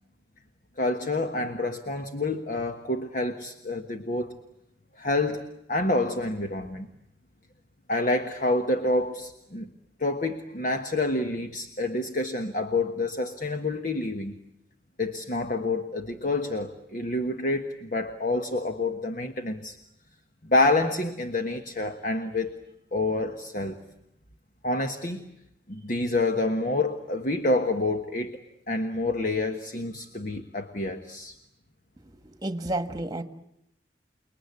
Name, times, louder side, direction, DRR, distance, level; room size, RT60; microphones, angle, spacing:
voice 1, 0.8-4.3 5.0-5.4 5.7-6.9 7.9-9.7 10.0-14.3 15.0-19.8 20.5-22.5 22.9-23.8 24.6-25.2 25.7-31.3, left 2 dB, 50° left, 6 dB, 1.4 m, -28 dB
voice 2, 32.0-33.2, right 1 dB, 20° right, 8 dB, 1.4 m, -31 dB
29.5 x 21.0 x 9.7 m, 0.81 s
head